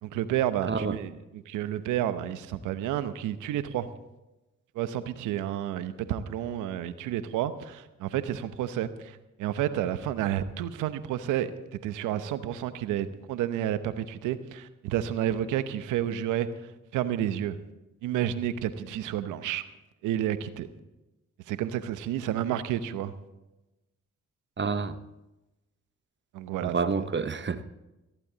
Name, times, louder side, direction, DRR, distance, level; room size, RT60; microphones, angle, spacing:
voice 1, 0.0-3.9 4.7-16.5 16.9-17.6 18.0-19.6 20.0-20.7 21.5-23.1 26.3-27.1, right 11 dB, 85° right, 12 dB, 0.9 m, -30 dB
voice 2, 24.6-25.0 26.6-27.6, right 5 dB, 40° right, 11 dB, 1.1 m, -28 dB
17.5 x 14.5 x 4.0 m, 1.0 s
supercardioid pair, 50°, 30 cm